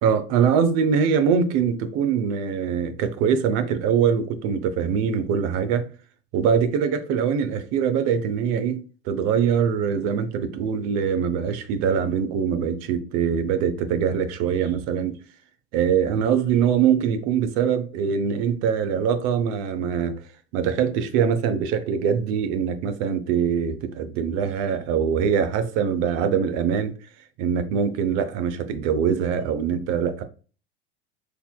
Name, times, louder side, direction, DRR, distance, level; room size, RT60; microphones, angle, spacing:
voice 1, 0.0-5.9 6.3-15.2 15.7-20.2 20.5-26.9 27.4-30.2, right 7 dB, 50° right, 0.7 m, -23 dB
4.6 x 3.3 x 2.2 m
hypercardioid pair, 100°, 32 cm